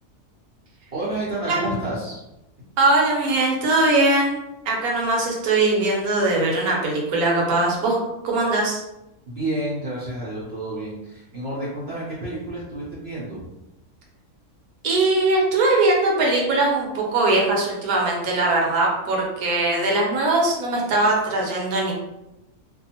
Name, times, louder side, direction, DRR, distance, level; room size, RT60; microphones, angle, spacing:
voice 1, 0.9-2.2 9.3-13.5, right 1 dB, 55° right, -7 dB, 0.8 m, -30 dB
voice 2, 2.8-8.0 8.2-8.8 14.8-21.9, right 2 dB, 75° right, -2 dB, 1.2 m, -21 dB
2.6 x 2.4 x 2.7 m, 0.93 s
omnidirectional pair, 1.6 m